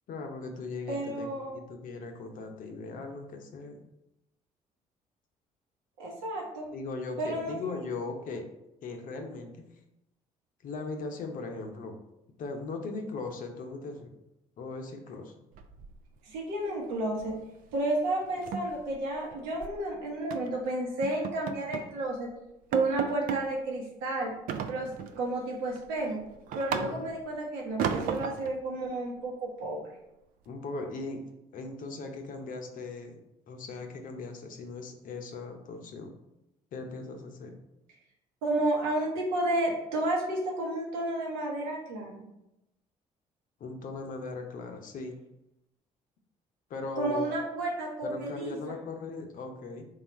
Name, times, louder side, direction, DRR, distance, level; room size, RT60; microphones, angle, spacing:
voice 1, 0.1-3.8 6.7-8.5 8.8-9.6 10.6-12.0 12.4-14.1 14.6-15.3 26.7-27.1 30.5-31.2 31.5-33.2 33.5-36.1 36.7-37.6 43.6-45.2 46.7-47.3 48.0-49.9, left 3 dB, 60° left, 4 dB, 0.7 m, -39 dB
voice 2, 0.9-1.6 6.0-6.7 7.2-7.8 16.3-17.4 17.7-22.3 22.7-24.3 24.7-26.2 26.5-29.9 38.4-42.2 47.0-48.8, right 2 dB, 80° right, -1 dB, 1.0 m, -31 dB
sound 1, 15.5-16.4 16.6-16.9 17.2-17.4 17.7-17.8 18.2-19.8 20.3-20.6 21.0-22.0 22.3-22.4 22.7-23.5 24.5-25.2 25.6-27.3 27.8-28.6, right 7 dB, 65° right, 0.4 m, -34 dB
3.5 x 2.4 x 4.2 m, 0.89 s
hypercardioid pair, 60°, 16 cm